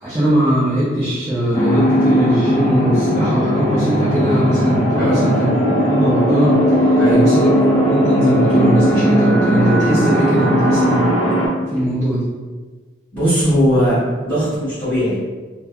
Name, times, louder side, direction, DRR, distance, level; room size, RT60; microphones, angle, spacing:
voice 1, 0.0-6.6 6.8-11.1 11.7-12.2, equal, 15° right, -12 dB, 0.6 m, -19 dB
sound 1, 1.5-11.5, equal, 30° left, 0.7 m, -17 dB
voice 2, 13.1-15.2, equal, 10° left, -15 dB, 1.4 m, -18 dB
3.0 x 2.2 x 2.4 m, 1.4 s
head